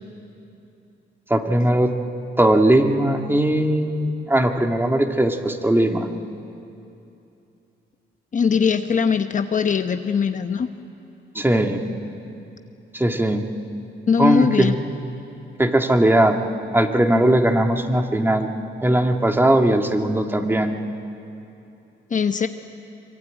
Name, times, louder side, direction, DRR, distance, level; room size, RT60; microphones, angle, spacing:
voice 1, 1.3-1.9 2.4-6.1 11.3-11.8 12.9-13.5 14.2-14.8 15.6-16.4 16.7-18.5 18.8-20.8, right 1 dB, 10° right, 4 dB, 2.0 m, -19 dB
voice 2, 8.3-10.7 14.1-14.7 22.1-22.5, left 6 dB, 40° left, 8 dB, 1.0 m, -20 dB
24.5 x 23.0 x 9.2 m, 2.8 s
cardioid pair, 90°, 20 cm